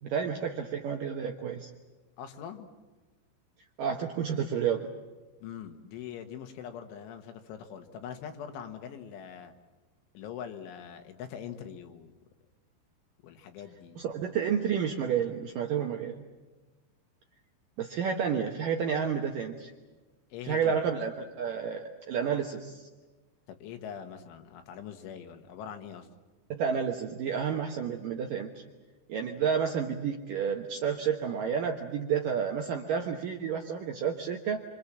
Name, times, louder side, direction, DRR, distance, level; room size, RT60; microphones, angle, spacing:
voice 1, 0.0-1.7 3.8-4.9 14.0-16.2 17.8-19.7 20.4-22.9 26.5-28.6 29.1-34.6, right 7 dB, 75° right, 2 dB, 2.0 m, -30 dB
voice 2, 2.2-2.7 5.4-9.5 10.2-12.1 13.2-14.0 20.3-20.9 23.6-26.1, left 8 dB, 80° left, 6 dB, 3.9 m, -42 dB
26.5 x 26.0 x 7.4 m, 1.2 s
omnidirectional pair, 5.5 m